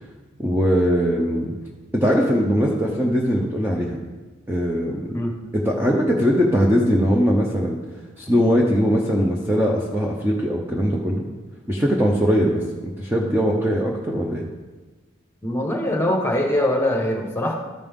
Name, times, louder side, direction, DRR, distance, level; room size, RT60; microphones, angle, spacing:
voice 1, 0.4-1.5 1.9-4.0 4.5-5.0 5.5-7.8 8.2-11.2 11.7-14.4, equal, 10° right, -2 dB, 0.6 m, -20 dB
voice 2, 15.4-17.5, left 1 dB, 10° left, 0 dB, 1.1 m, -22 dB
13.0 x 5.3 x 3.6 m, 1.2 s
head